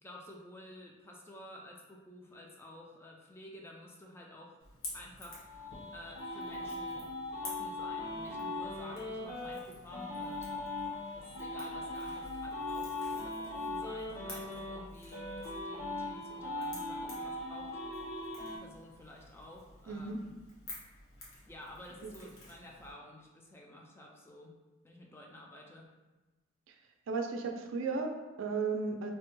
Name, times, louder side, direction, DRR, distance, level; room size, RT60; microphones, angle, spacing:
voice 1, 0.0-4.6 4.9-5.4 5.9-7.1 7.4-10.5 11.1-17.7 18.5-20.3 21.4-24.6 24.8-25.9, left 1 dB, 10° left, -1 dB, 0.3 m, -52 dB
Crackle / Crack, 4.6-22.9, left 1 dB, 85° left, 1.0 m, -52 dB
sound 1, 5.2-9.6 9.9-14.8 15.1-18.6, left 2 dB, 60° left, 1.0 m, -39 dB
voice 2, 19.9-20.2 22.0-22.1 27.1-29.1, right 4 dB, 75° right, 3 dB, 0.4 m, -35 dB
3.2 x 2.1 x 3.0 m, 1.2 s
head